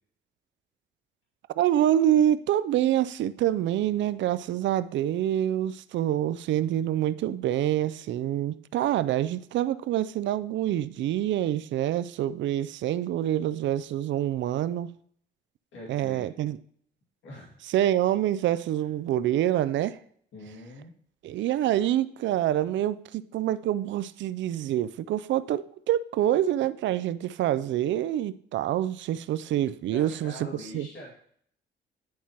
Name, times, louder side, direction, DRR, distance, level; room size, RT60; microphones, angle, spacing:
voice 1, 1.6-14.9 15.9-16.6 17.7-20.0 21.2-30.3 30.7-30.9, right 12 dB, 70° right, 0.4 m, -26 dB
voice 2, 15.7-16.3 17.2-17.6 18.8-18.9 20.3-20.9 29.9-31.1, left 1 dB, 70° left, 2.2 m, -43 dB
10.5 x 4.4 x 2.9 m
cardioid pair, 90°, 20 cm